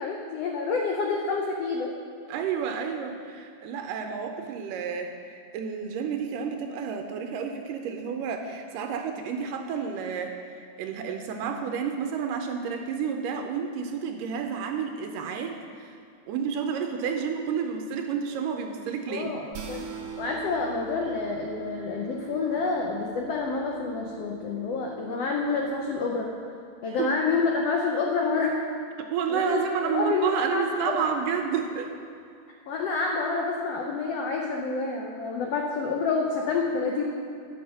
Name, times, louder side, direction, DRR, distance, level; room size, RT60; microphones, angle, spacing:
voice 1, 0.0-1.9 19.1-19.8 20.2-26.3 26.8-28.7 29.3-31.0 32.7-37.0, left 4 dB, 90° left, 1 dB, 1.3 m, -28 dB
voice 2, 2.3-15.9 16.3-19.3 27.0-27.1 29.0-31.9, right 6 dB, 85° right, 4 dB, 2.2 m, -30 dB
sound 1, 19.5-26.0, right 8 dB, 65° right, 1.9 m, -41 dB
10.0 x 7.2 x 6.1 m, 2.4 s
omnidirectional pair, 3.8 m